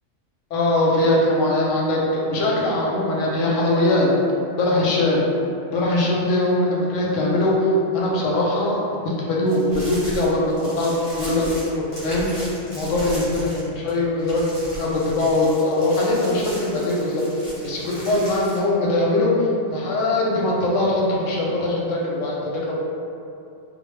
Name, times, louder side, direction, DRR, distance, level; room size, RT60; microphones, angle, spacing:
voice 1, 0.5-4.1 4.6-5.2 5.7-8.8 9.3-11.4 11.7-22.4 22.7-22.8, left 1 dB, 90° left, -4 dB, 1.0 m, -21 dB
sound 1, 9.5-13.9 14.2-18.6, equal, 30° left, 0.7 m, -37 dB
2.5 x 2.1 x 3.1 m, 2.5 s
omnidirectional pair, 1.3 m